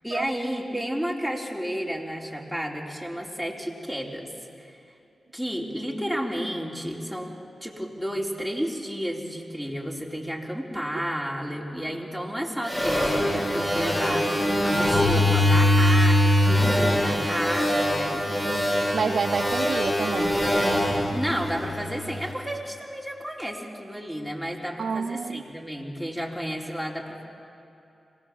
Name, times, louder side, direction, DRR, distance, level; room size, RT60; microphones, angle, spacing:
voice 1, 0.0-4.3 4.6-4.8 5.3-7.3 7.6-18.3 21.1-27.2, equal, ahead, -1 dB, 4.1 m, -32 dB
sound 1, 12.7-22.1, left 1 dB, 20° left, 5.4 m, -23 dB
voice 2, 18.9-20.3 24.8-25.4, right 5 dB, 70° right, 12 dB, 0.5 m, -28 dB
25.5 x 19.0 x 7.4 m, 2.8 s
cardioid pair, 50°, 0 cm